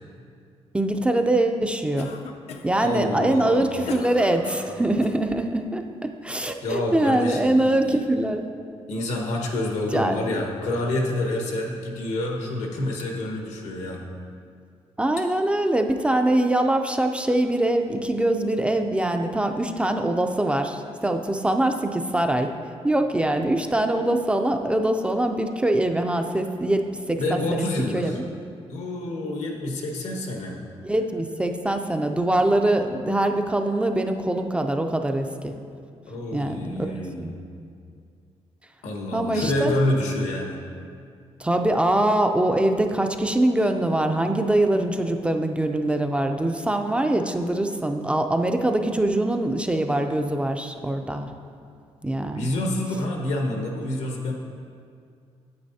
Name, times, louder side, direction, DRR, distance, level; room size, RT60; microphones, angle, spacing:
voice 1, 0.7-2.1 2.6-8.4 9.9-10.2 15.0-22.5 22.8-28.2 30.8-35.5 36.3-37.3 39.1-39.7 41.4-51.3 52.0-52.5, right 1 dB, 10° right, 5 dB, 0.3 m, -23 dB
Cough, 2.0-2.8 3.4-5.2, left 6 dB, 70° left, 0.5 m, -38 dB
voice 2, 2.8-4.9 6.6-8.0 8.9-14.1 27.2-28.2 28.7-30.6 36.1-37.6 38.8-40.6 52.3-54.3, left 1 dB, 90° left, 0 dB, 1.3 m, -28 dB
9.6 x 8.4 x 2.7 m, 2.3 s
wide cardioid pair, 155°, 11 cm